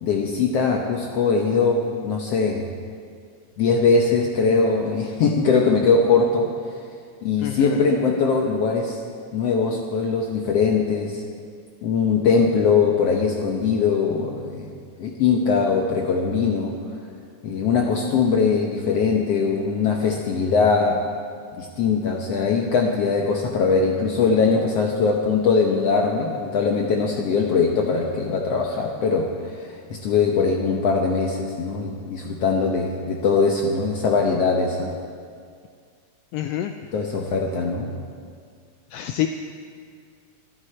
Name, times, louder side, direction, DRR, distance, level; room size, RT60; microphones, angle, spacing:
voice 1, 0.0-2.7 3.6-6.5 7.2-9.0 9.3-11.2 11.8-14.7 15.0-16.8 17.4-21.0 21.6-35.0 36.9-37.9, left 5 dB, 65° left, 0 dB, 1.8 m, -21 dB
voice 2, 7.4-7.8 36.3-36.7 38.9-39.3, left 13 dB, 80° left, 7 dB, 1.4 m, -27 dB
27.0 x 9.9 x 4.4 m, 2.1 s
omnidirectional pair, 3.4 m